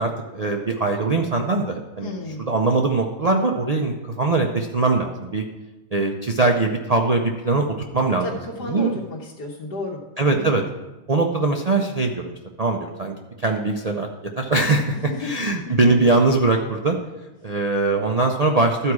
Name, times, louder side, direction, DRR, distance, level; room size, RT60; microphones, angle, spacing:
voice 1, 0.0-2.1 2.5-5.4 5.9-7.6 7.9-8.2 8.6-9.0 10.2-10.6 11.1-12.3 12.6-14.1 14.4-17.0 17.4-18.9, right 3 dB, 80° right, 1 dB, 0.3 m, -21 dB
voice 2, 2.0-2.4 8.2-10.0 10.3-10.5 14.9-15.3, left 2 dB, 85° left, -4 dB, 1.8 m, -32 dB
12.5 x 4.7 x 6.2 m, 1.1 s
omnidirectional pair, 1.7 m